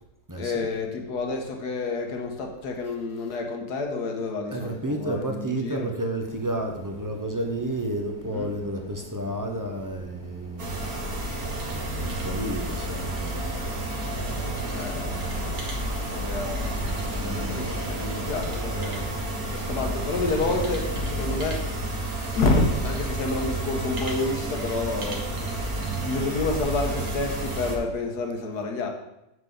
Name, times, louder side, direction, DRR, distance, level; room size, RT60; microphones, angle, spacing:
voice 1, 0.3-5.9 8.2-8.5 14.7-16.8 17.2-19.1 19.5-21.8 22.3-25.7 26.0-28.9, left 3 dB, 70° left, 2 dB, 1.8 m, -29 dB
voice 2, 4.5-11.1 11.6-13.6, right 1 dB, 20° right, 2 dB, 0.6 m, -31 dB
sound 1, 6.2-20.6, left 2 dB, 85° left, 3.4 m, -45 dB
sound 2, 10.6-27.8, right 1 dB, 60° right, 1.8 m, -30 dB
7.9 x 7.4 x 3.9 m, 0.89 s
omnidirectional pair, 1.8 m